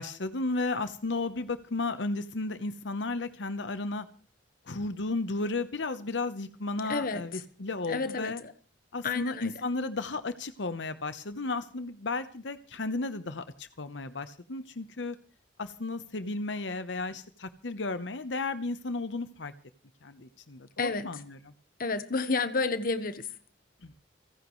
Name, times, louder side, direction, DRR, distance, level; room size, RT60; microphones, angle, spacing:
voice 1, 0.0-4.1 4.7-8.4 8.9-15.2 15.6-19.5 20.0-21.4 23.8-23.9, left 3 dB, 75° left, 1.0 m, -34 dB
voice 2, 6.8-7.4 7.9-8.5 9.0-9.5 20.8-21.1 21.8-23.3, left 3 dB, 50° left, 1.2 m, -30 dB
29.5 x 10.5 x 3.2 m
head